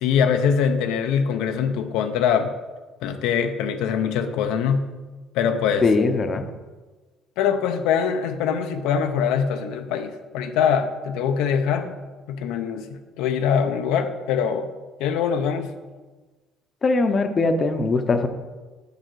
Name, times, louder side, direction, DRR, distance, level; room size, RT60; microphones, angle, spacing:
voice 1, 0.0-2.5 3.0-4.9 5.3-5.9 7.4-11.9 12.3-14.7 15.0-15.7, left 7 dB, 85° left, 7 dB, 0.6 m, -23 dB
voice 2, 5.8-6.4 16.8-18.3, left 3 dB, 30° left, 7 dB, 0.6 m, -21 dB
6.6 x 4.8 x 6.2 m, 1.3 s
cardioid pair, 125°, 0 cm